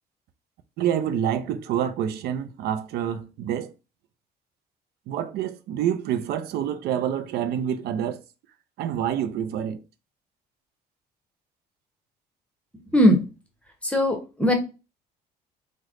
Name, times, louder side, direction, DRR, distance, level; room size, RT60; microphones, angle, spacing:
voice 1, 0.8-3.7 5.1-8.2 8.8-9.8, right 9 dB, 70° right, 0.4 m, -27 dB
voice 2, 13.8-14.5, equal, 5° left, 0.9 m, -19 dB
3.2 x 2.1 x 3.6 m
cardioid pair, 110°, 17 cm